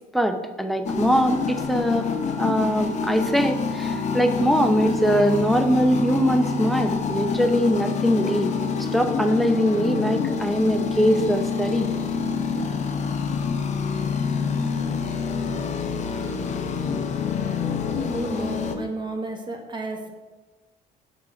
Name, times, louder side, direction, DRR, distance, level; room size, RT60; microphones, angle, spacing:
voice 1, 0.1-2.1 2.4-8.5 8.8-11.9, equal, ahead, 6 dB, 0.7 m, -22 dB
sound 1, 0.9-18.8, left 5 dB, 45° left, 0.8 m, -27 dB
voice 2, 17.9-20.2, right 2 dB, 25° right, 3 dB, 1.4 m, -32 dB
7.2 x 4.4 x 6.0 m, 1.2 s
cardioid pair, 110°, 17 cm